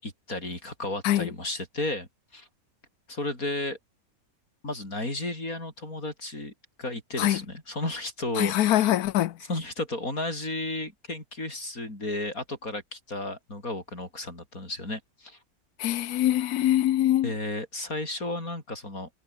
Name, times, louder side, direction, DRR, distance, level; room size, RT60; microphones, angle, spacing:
voice 1, 0.0-2.5 3.1-3.8 4.6-6.5 6.8-8.9 9.5-15.4 17.2-19.1, left 2 dB, 70° left, 7.2 m, -33 dB
voice 2, 8.3-9.4 15.8-17.3, left 13 dB, 90° left, 1.2 m, -23 dB
omnidirectional pair, 1.6 m